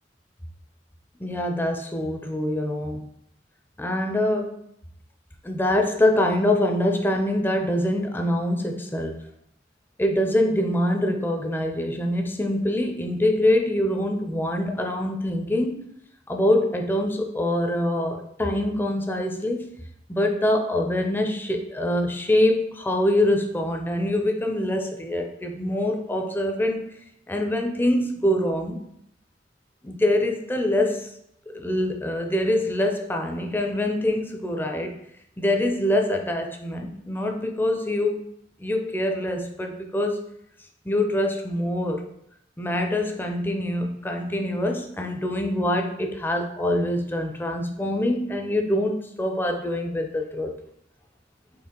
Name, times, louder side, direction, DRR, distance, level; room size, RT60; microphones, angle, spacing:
voice 1, 1.2-3.0 3.8-4.6 5.4-9.2 10.0-15.9 16.3-19.7 20.1-26.9 27.3-28.8 29.8-31.1 31.5-35.0 35.4-38.2 38.6-40.3 40.8-42.0 42.6-50.5, left 1 dB, 10° left, 3 dB, 0.5 m, -24 dB
4.3 x 3.2 x 3.7 m, 0.74 s
head